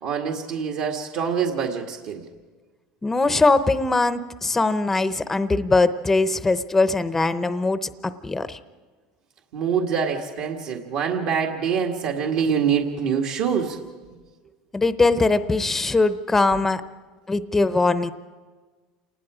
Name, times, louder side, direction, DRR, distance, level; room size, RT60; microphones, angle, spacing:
voice 1, 0.0-2.3 9.5-13.9, right 7 dB, 65° right, 1 dB, 1.8 m, -25 dB
voice 2, 3.0-8.6 14.7-16.8 17.3-18.1, left 3 dB, 10° left, 12 dB, 0.7 m, -21 dB
27.5 x 19.5 x 5.0 m, 1.4 s
supercardioid pair, 130°, 3 cm